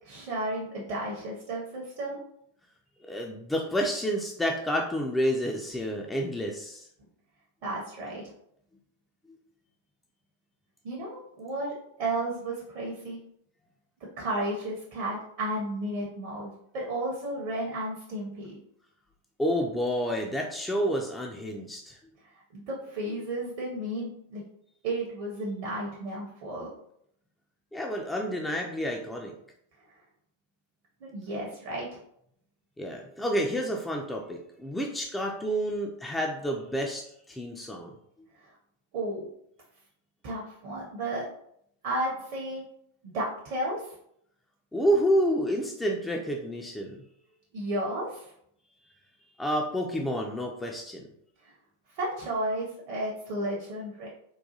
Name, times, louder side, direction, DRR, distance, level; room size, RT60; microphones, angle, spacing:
voice 1, 0.0-2.2 7.6-8.2 10.8-13.2 14.2-18.6 22.2-24.4 24.8-26.7 31.0-32.0 38.4-38.5 38.9-39.3 40.2-41.3 41.8-42.6 43.0-43.9 47.5-48.3 51.4-51.5 51.9-54.1, right 1 dB, 45° right, -4 dB, 0.6 m, -33 dB
voice 2, 3.1-6.9 19.4-22.0 27.7-29.3 32.8-37.9 44.7-47.0 49.4-51.1, equal, 5° left, 0 dB, 0.3 m, -29 dB
3.8 x 2.2 x 2.7 m, 0.72 s
figure-of-eight pair, 90°, 0 cm